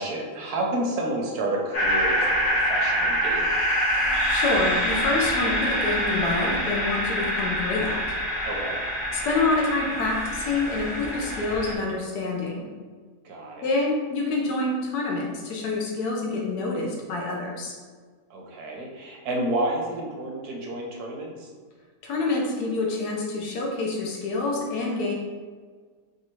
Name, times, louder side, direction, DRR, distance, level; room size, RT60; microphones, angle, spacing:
voice 1, 0.0-3.6 8.4-8.8 13.2-13.6 18.3-21.5, right 1 dB, 75° right, 0 dB, 1.3 m, -30 dB
sound 1, 1.7-11.7, equal, 55° left, 1.4 m, -25 dB
voice 2, 4.3-8.0 9.1-12.7 13.6-17.8 22.0-25.1, left 3 dB, 80° left, -1 dB, 1.2 m, -27 dB
5.1 x 2.5 x 3.1 m, 1.5 s
omnidirectional pair, 1.7 m